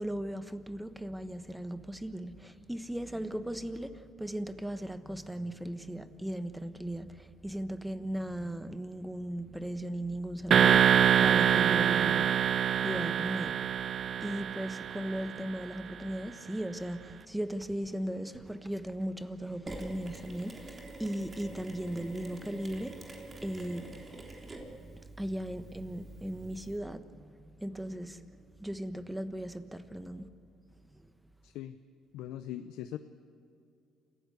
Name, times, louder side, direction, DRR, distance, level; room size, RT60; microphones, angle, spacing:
voice 1, 0.0-12.4 12.8-24.0 24.8-30.3 30.9-31.1, right 1 dB, 5° right, 1.2 m, -37 dB
sound 1, 10.5-15.4, right 9 dB, 50° right, 0.6 m, -25 dB
Mechanisms, 19.7-26.8, right 2 dB, 25° right, 3.6 m, -46 dB
voice 2, 31.4-31.8 32.1-33.0, left 12 dB, 85° left, 0.7 m, -40 dB
28.5 x 15.5 x 8.1 m
cardioid pair, 90°, 0 cm